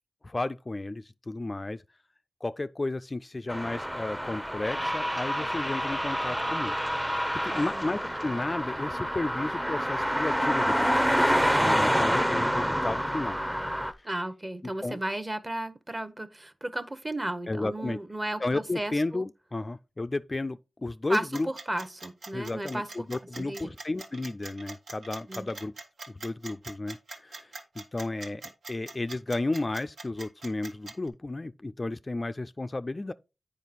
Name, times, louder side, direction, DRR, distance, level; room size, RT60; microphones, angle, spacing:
voice 1, 0.2-1.8 2.4-6.8 7.1-10.9 11.6-13.4 14.0-14.1 14.8-15.0 17.5-18.0 18.4-21.5 22.3-25.7 26.1-33.1, left 2 dB, 30° left, 0.3 m, -33 dB
sound 1, 3.5-13.9, equal, 5° right, 0.6 m, -27 dB
voice 2, 7.5-7.9 14.0-19.2 21.1-23.1 23.4-23.7 25.3-25.5, right 1 dB, 25° right, 0.9 m, -34 dB
sound 2, 21.1-31.1, right 3 dB, 85° right, 1.5 m, -43 dB
9.1 x 5.0 x 4.1 m
wide cardioid pair, 80°, 0 cm